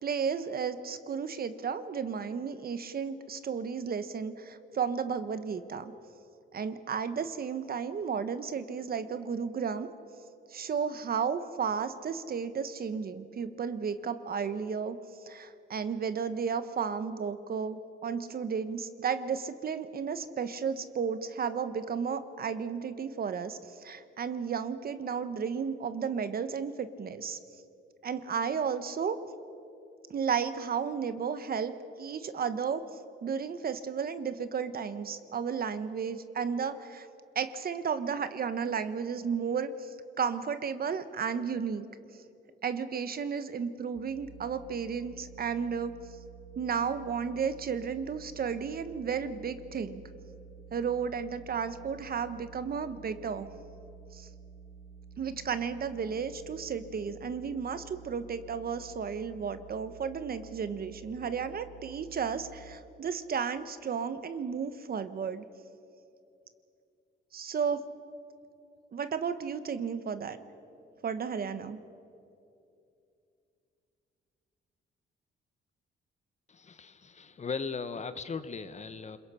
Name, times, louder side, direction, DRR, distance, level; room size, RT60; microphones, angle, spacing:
voice 1, 0.0-5.9 6.5-9.9 10.5-15.0 15.2-27.4 28.0-29.2 30.1-31.7 32.0-32.8 33.2-37.1 37.3-41.9 42.6-46.0 46.6-50.0 50.7-53.5 54.1-54.3 55.2-65.4 67.3-67.8 68.9-70.4 71.0-71.8, right 6 dB, 50° right, 11 dB, 1.2 m, -33 dB
sound 1, 43.9-62.8, right 6 dB, 85° right, 3.0 m, -51 dB
voice 2, 76.5-79.2, left 5 dB, 35° left, 12 dB, 1.1 m, -38 dB
29.0 x 21.5 x 5.7 m, 2.6 s
cardioid pair, 90°, 20 cm